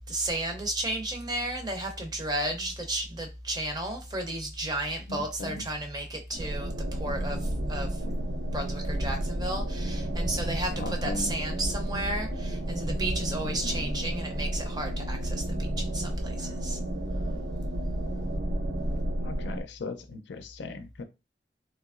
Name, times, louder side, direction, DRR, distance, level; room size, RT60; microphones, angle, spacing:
voice 1, 0.1-8.0 8.5-16.8, right 1 dB, 20° right, 0.6 m, -33 dB
voice 2, 5.1-5.6 10.8-11.3 13.4-13.6 19.2-21.0, left 2 dB, 80° left, 0.5 m, -38 dB
sound 1, 6.3-19.6, right 1 dB, 75° right, 0.6 m, -31 dB
3.3 x 2.9 x 2.4 m
head